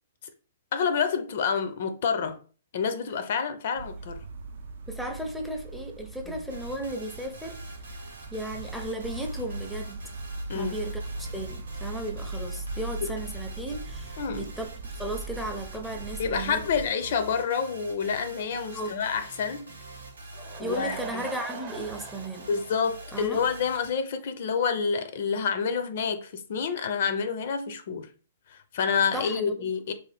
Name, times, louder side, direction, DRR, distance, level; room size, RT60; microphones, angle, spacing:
voice 1, 0.7-2.4 2.7-4.2 10.5-10.8 13.0-13.1 14.2-14.5 16.2-19.7 20.6-21.2 22.5-28.1 28.5-29.9, left 6 dB, 60° left, 0.4 m, -28 dB
sound 1, 3.7-16.9, right 2 dB, 65° right, 0.5 m, -39 dB
voice 2, 4.9-7.6 7.9-8.0 8.3-10.1 10.5-16.6 18.7-19.0 20.6-22.5 23.1-23.4 29.1-29.7, right 1 dB, ahead, 0.5 m, -35 dB
sound 2, 6.5-23.9, right 2 dB, 85° right, 0.9 m, -45 dB
Laughter / Crowd, 20.1-23.6 23.9-24.0 24.6-24.7 24.8-24.9, right 6 dB, 35° right, 0.8 m, -42 dB
2.6 x 2.3 x 3.3 m
hypercardioid pair, 130°, 0 cm